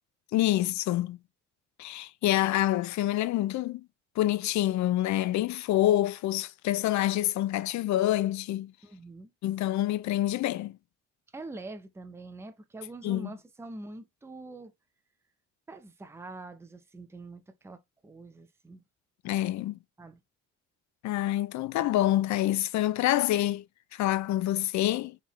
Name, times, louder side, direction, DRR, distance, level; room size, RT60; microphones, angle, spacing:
voice 1, 0.3-1.2 1.8-3.9 4.2-8.7 9.4-10.8 13.0-13.3 19.2-19.8 21.0-23.7 23.9-25.2, left 14 dB, 70° left, 0.4 m, -27 dB
voice 2, 8.8-9.3 11.3-14.7 15.7-18.8 20.0-20.2, right 2 dB, 10° right, 0.5 m, -44 dB
3.6 x 3.5 x 3.0 m
cardioid pair, 90°, 30 cm